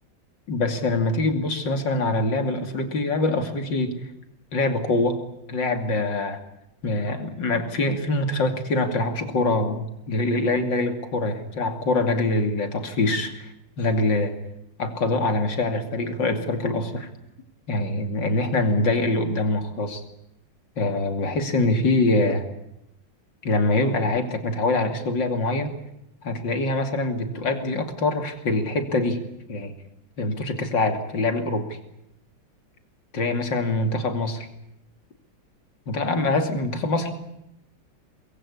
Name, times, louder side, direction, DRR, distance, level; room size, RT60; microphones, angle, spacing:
voice 1, 0.5-4.0 4.5-5.2 5.5-6.4 6.8-14.3 14.8-17.1 17.7-20.0 20.8-22.5 23.4-25.8 26.2-29.2 29.5-29.7 30.2-31.8 33.1-34.5 35.9-37.1, left 2 dB, 60° left, 6 dB, 3.3 m, -24 dB
23.5 x 22.0 x 8.4 m, 0.84 s
omnidirectional pair, 2.2 m